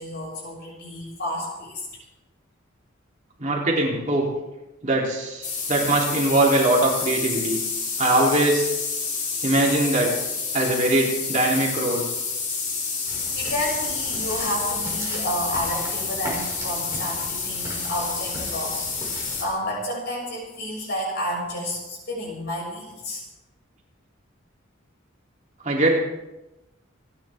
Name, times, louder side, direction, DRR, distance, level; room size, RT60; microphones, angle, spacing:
voice 1, 0.0-1.8 13.0-13.1 13.3-23.2, left 1 dB, 55° left, -2 dB, 6.2 m, -30 dB
voice 2, 3.4-4.3 4.8-7.6 8.0-8.7 9.4-10.1 10.5-12.1 25.6-26.0, right 1 dB, 40° right, -2 dB, 3.2 m, -21 dB
sound 1, 5.4-19.4, left 4 dB, 40° left, 3.1 m, -29 dB
sound 2, 13.1-19.5, right 1 dB, 15° right, 5.3 m, -38 dB
28.0 x 10.5 x 3.6 m, 1.0 s
head